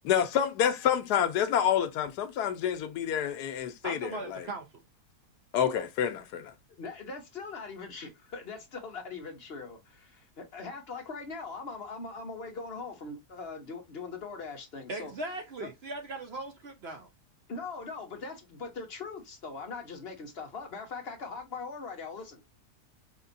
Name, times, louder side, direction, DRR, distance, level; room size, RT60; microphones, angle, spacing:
voice 1, 0.1-4.4 5.5-6.5, left 9 dB, 85° left, 1.2 m, -28 dB
voice 2, 3.8-4.8 14.9-17.1, right 2 dB, 50° right, 0.8 m, -39 dB
voice 3, 6.8-15.1 15.6-15.7 17.5-22.4, left 4 dB, 45° left, 1.1 m, -41 dB
5.1 x 2.9 x 2.6 m
omnidirectional pair, 1.7 m